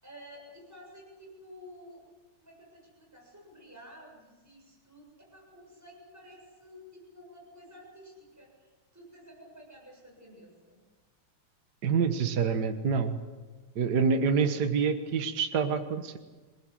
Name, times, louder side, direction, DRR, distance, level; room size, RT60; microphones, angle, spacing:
voice 1, 0.0-2.0 2.4-10.8, equal, 5° right, -1 dB, 7.4 m, -52 dB
voice 2, 11.8-13.2 13.8-16.2, right 5 dB, 55° right, 6 dB, 1.8 m, -27 dB
27.5 x 19.0 x 7.6 m, 1.3 s
omnidirectional pair, 2.3 m